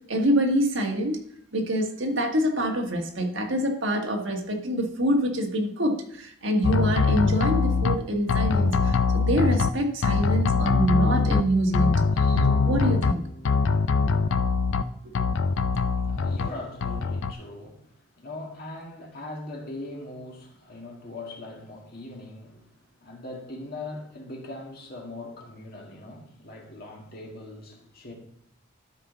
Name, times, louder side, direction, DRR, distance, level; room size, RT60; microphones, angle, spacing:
voice 1, 0.1-1.2 1.5-13.2 15.0-15.1, equal, 60° right, 1.4 m, -26 dB
sound 1, 6.6-8.0 8.3-9.7 10.0-11.4 11.7-13.1 13.4-14.8 15.1-16.5 16.8-17.3, left 4 dB, 65° left, 0.4 m, -22 dB
Bowed string instrument, 12.3-13.2, left 3 dB, 90° left, 1.1 m, -29 dB
voice 2, 16.0-17.9 18.2-22.7 23.0-28.1, left 2 dB, 45° left, 1.9 m, -40 dB
13.0 x 5.4 x 4.0 m
head